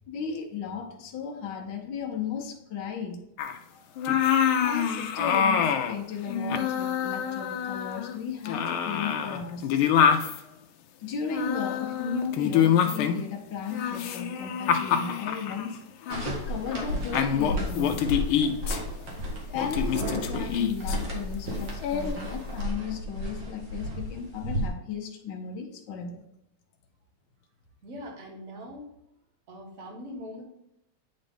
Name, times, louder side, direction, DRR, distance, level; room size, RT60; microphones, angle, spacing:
voice 1, 0.1-3.3 4.6-9.7 11.0-15.8 16.2-18.0 19.5-26.2, left 6 dB, 65° left, 0 dB, 1.4 m, -35 dB
sound 1, 3.4-3.6 4.0-6.0 6.3-8.2 8.5-10.4 11.3-13.3 13.7-15.7 16.1-16.2 16.7-16.9 17.1-18.8 19.6-21.0 21.8-22.2, left 8 dB, 85° left, 1.5 m, -26 dB
sound 2, 16.1-24.7, equal, 60° right, 2.1 m, -33 dB
voice 2, 27.8-28.9 29.5-30.4, equal, 45° right, 0 dB, 1.6 m, -41 dB
9.0 x 3.9 x 3.5 m, 0.82 s
omnidirectional pair, 2.3 m